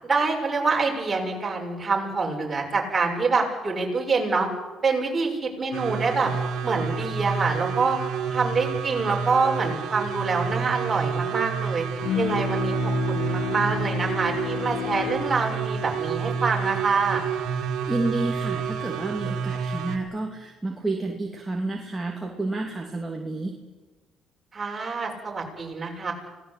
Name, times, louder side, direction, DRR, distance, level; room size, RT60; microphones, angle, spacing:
voice 1, 0.0-4.5 4.8-6.3 6.6-8.0 8.3-11.8 12.1-17.2 24.5-26.1, right 4 dB, 25° right, 0 dB, 6.9 m, -26 dB
sound 1, 5.7-20.0, right 6 dB, 70° right, 2.7 m, -29 dB
Bowed string instrument, 12.0-17.4, left 11 dB, 75° left, 1.9 m, -33 dB
voice 2, 17.8-23.5, right 2 dB, 10° right, 0 dB, 2.9 m, -30 dB
25.5 x 18.0 x 8.4 m, 1.2 s
cardioid pair, 90°, 0 cm